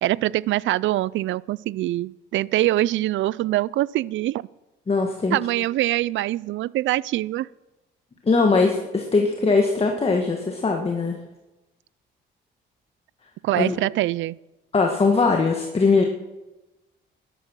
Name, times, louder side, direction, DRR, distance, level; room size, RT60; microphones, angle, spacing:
voice 1, 0.0-4.5 5.3-7.5 13.4-14.4, right 15 dB, 75° right, 0.4 m, -24 dB
voice 2, 4.9-5.4 8.2-11.2 13.5-13.7 14.7-16.0, left 4 dB, 30° left, 1.7 m, -20 dB
13.0 x 12.0 x 6.3 m
cardioid pair, 90°, 20 cm